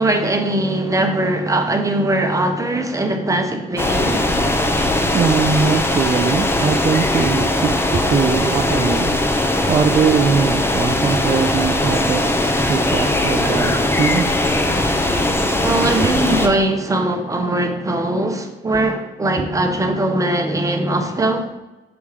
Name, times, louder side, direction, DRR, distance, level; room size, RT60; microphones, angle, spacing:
voice 1, 0.0-4.2 15.6-21.5, right 1 dB, 15° right, 0.9 m, -20 dB
sound 1, 3.8-16.5, left 1 dB, 10° left, 0.7 m, -19 dB
voice 2, 5.1-9.2 9.7-14.3 16.0-16.1 19.4-19.5, right 6 dB, 30° right, 0.4 m, -21 dB
7.0 x 3.5 x 4.8 m
cardioid pair, 90°, 20 cm